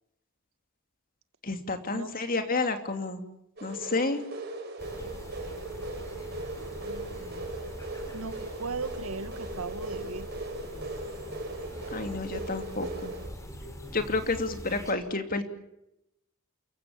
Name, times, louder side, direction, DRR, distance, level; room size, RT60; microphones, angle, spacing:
voice 1, 1.4-3.2 3.6-4.2 11.9-13.1 13.9-15.4, left 3 dB, 40° left, 8 dB, 2.8 m, -30 dB
sound 1, 3.6-13.3, right 2 dB, 50° right, 5.3 m, -38 dB
sound 2, 4.8-14.9, equal, 15° left, 4.4 m, -43 dB
voice 2, 6.7-7.5 8.1-10.3, right 3 dB, 80° right, 11 dB, 1.9 m, -38 dB
29.0 x 16.0 x 8.8 m, 0.83 s
head